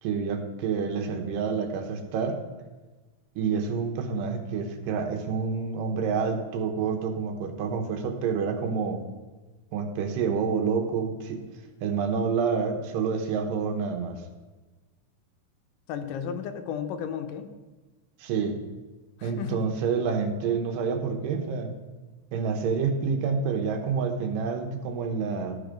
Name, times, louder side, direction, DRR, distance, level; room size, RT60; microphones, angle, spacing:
voice 1, 0.0-2.4 3.4-9.0 9.7-11.4 11.8-14.2 18.2-18.5 19.2-21.7 22.3-25.6, right 5 dB, 85° right, 5 dB, 2.5 m, -28 dB
voice 2, 15.9-17.5 19.2-19.6, left 8 dB, 80° left, 8 dB, 2.2 m, -33 dB
12.0 x 4.7 x 5.0 m, 1.2 s
omnidirectional pair, 3.8 m